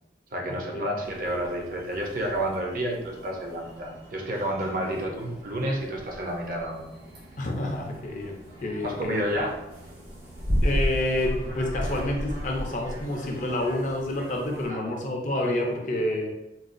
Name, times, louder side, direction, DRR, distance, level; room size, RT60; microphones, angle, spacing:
voice 1, 0.3-6.9 8.8-9.6 14.7-15.0, right 1 dB, 50° right, 0 dB, 0.5 m, -30 dB
sound 1, 1.0-14.7, equal, 65° right, 0.9 m, -35 dB
voice 2, 7.4-8.3 8.6-9.2 10.6-16.3, left 1 dB, 45° left, 1 dB, 0.5 m, -28 dB
3.9 x 2.2 x 2.5 m, 0.91 s
head